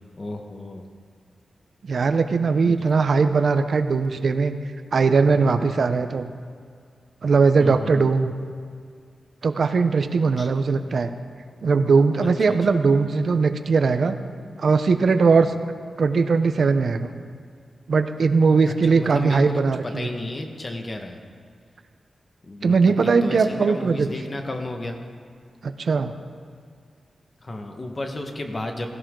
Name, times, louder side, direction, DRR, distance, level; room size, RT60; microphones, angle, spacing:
voice 1, 0.2-0.8 2.6-3.0 7.6-8.1 10.4-10.5 12.2-12.8 15.4-15.7 18.6-21.2 22.4-25.0 27.4-28.9, left 2 dB, 35° left, 4 dB, 1.5 m, -33 dB
voice 2, 1.8-4.5 4.9-6.3 7.2-8.3 9.4-11.1 11.6-14.2 14.6-15.5 16.0-17.1 17.9-20.1 22.6-24.1 25.6-26.1, right 4 dB, 65° right, 9 dB, 0.8 m, -20 dB
16.5 x 16.0 x 3.9 m, 2.2 s
wide cardioid pair, 100°, 0 cm